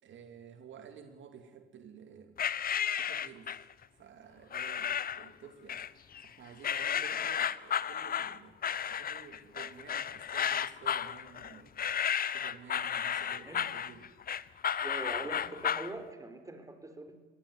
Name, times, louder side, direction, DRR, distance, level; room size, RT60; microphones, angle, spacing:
voice 1, 0.0-2.4 2.8-3.6 4.0-5.8 6.2-8.6 8.8-11.7 12.3-14.1 15.2-15.6, right 7 dB, 70° right, 8 dB, 2.6 m, -52 dB
sound 1, 2.4-3.7 4.5-5.3 5.7-6.3 6.6-15.9, left 8 dB, 50° left, 0.8 m, -33 dB
voice 2, 14.8-17.2, right 2 dB, 15° right, 7 dB, 4.1 m, -43 dB
23.5 x 18.5 x 9.6 m, 1.3 s
cardioid pair, 90°, 20 cm